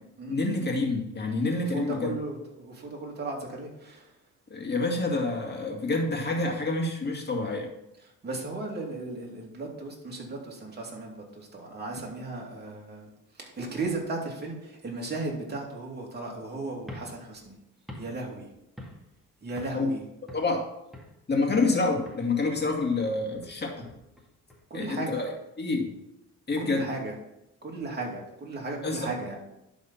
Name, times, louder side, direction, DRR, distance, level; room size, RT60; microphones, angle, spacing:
voice 1, 0.3-2.1 4.5-7.7 19.7-19.9 20.3-20.7 21.3-23.9 24.7-25.3 25.6-25.9 26.5-26.9 28.8-29.1, left 3 dB, 35° left, 1 dB, 2.3 m, -27 dB
voice 2, 1.7-4.1 8.2-13.1 13.4-17.6 18.0-18.5 19.4-20.0 24.7-25.2 26.6-27.1 27.6-29.4, right 2 dB, 35° right, -1 dB, 2.7 m, -36 dB
sound 1, 16.8-19.2 19.6-19.9 20.3-21.2 21.5-21.8 22.1-25.2, left 1 dB, ahead, 2.0 m, -47 dB
11.0 x 4.2 x 5.7 m, 0.88 s
cardioid pair, 90°, 30 cm